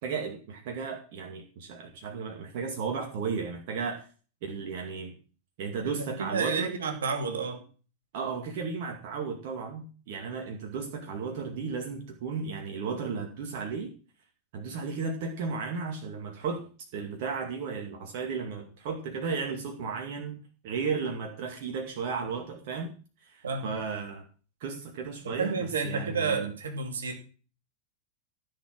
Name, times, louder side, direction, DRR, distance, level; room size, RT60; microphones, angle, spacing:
voice 1, 0.0-4.1 4.4-5.1 5.6-6.7 8.1-13.9 14.5-16.6 16.9-20.4 20.6-22.9 23.2-24.3 24.6-26.6, right 5 dB, 50° right, 3 dB, 2.2 m, -34 dB
voice 2, 6.2-7.6 23.4-23.7 25.2-27.2, right 5 dB, 65° right, 4 dB, 2.6 m, -30 dB
15.0 x 7.3 x 6.1 m, 0.38 s
figure-of-eight pair, 90°, 0 cm